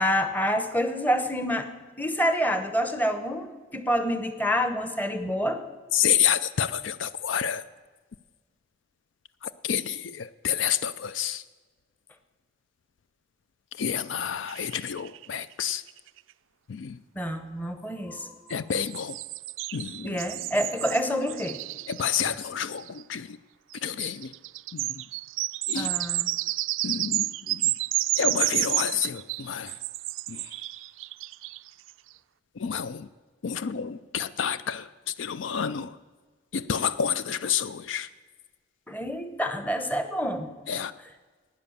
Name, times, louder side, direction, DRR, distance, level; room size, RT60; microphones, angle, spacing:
voice 1, 0.0-1.7 2.0-5.6 17.1-18.3 20.0-21.6 25.7-26.3 38.9-40.5, equal, 10° left, 8 dB, 0.9 m, -27 dB
voice 2, 5.9-7.6 9.4-11.4 13.7-15.8 16.7-17.0 18.5-19.2 19.7-20.2 21.9-23.4 23.7-24.3 24.7-25.1 25.7-25.9 26.8-27.7 28.2-29.8 30.3-30.6 32.5-33.1 33.4-36.0 36.5-38.1 40.7-40.9, left 8 dB, 75° left, 15 dB, 0.4 m, -29 dB
sound 1, 14.5-15.5 15.9-16.0 16.2-16.3 18.5-23.0 23.7-31.9, right 17 dB, 85° right, 0.3 m, -31 dB
12.0 x 9.5 x 7.1 m, 1.4 s
head